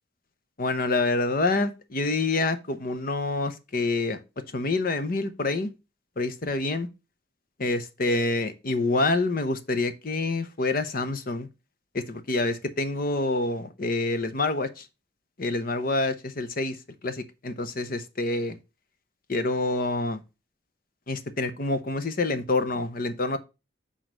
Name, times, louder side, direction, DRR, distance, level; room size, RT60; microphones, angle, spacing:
voice 1, 0.6-4.2 4.5-5.7 6.2-6.9 7.6-11.5 11.9-14.9 15.4-18.6 19.3-20.2 21.1-23.4, left 2 dB, 50° left, 0.8 m, -27 dB
6.2 x 3.9 x 6.0 m
head